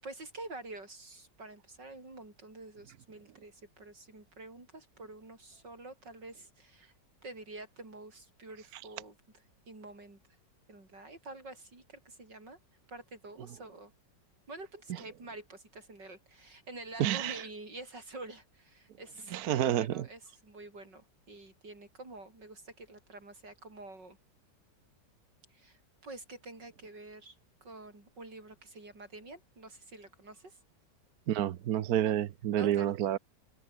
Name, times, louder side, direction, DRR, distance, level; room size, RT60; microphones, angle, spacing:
voice 1, 0.0-6.9 7.2-9.2 9.7-10.2 10.7-12.6 12.9-13.9 14.5-24.2 25.5-27.4 27.6-30.6 32.0-32.1 32.6-32.9, right 2 dB, 85° right, 7.3 m, -48 dB
voice 2, 17.0-17.4 19.3-20.1 31.3-33.2, right 11 dB, 65° right, 1.2 m, -29 dB
omnidirectional pair, 1.9 m